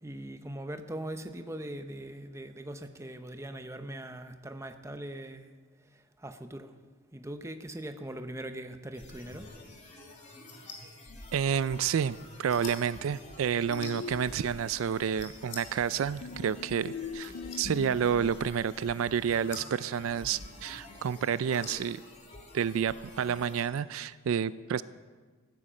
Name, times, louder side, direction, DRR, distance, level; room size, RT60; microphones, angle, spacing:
voice 1, 0.0-5.5 6.2-6.7 7.1-9.5, right 1 dB, 15° right, 7 dB, 0.8 m, -41 dB
sound 1, 8.9-23.6, left 2 dB, 35° left, 3.0 m, -47 dB
voice 2, 11.3-17.3 17.6-22.0 22.5-24.8, right 7 dB, 75° right, 17 dB, 0.4 m, -30 dB
sound 2, 13.7-15.0 16.2-18.4, left 5 dB, 80° left, 0.5 m, -41 dB
15.5 x 9.7 x 7.5 m, 1.5 s
head